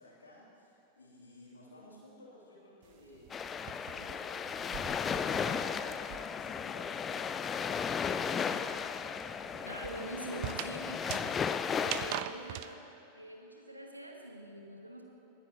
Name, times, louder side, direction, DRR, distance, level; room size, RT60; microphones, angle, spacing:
voice 1, 0.0-7.9 8.2-9.3, left 2 dB, 75° left, -5 dB, 2.9 m, -55 dB
sound 1, 2.8-6.6 6.8-12.7, right 13 dB, 45° right, 0.4 m, -44 dB
sound 2, 3.3-12.2, left 6 dB, 20° left, 0.4 m, -35 dB
voice 2, 9.7-11.4 11.8-12.8 13.1-15.0, right 1 dB, 85° right, 1 dB, 1.2 m, -44 dB
20.0 x 9.7 x 3.0 m, 2.9 s
figure-of-eight pair, 90°, 0 cm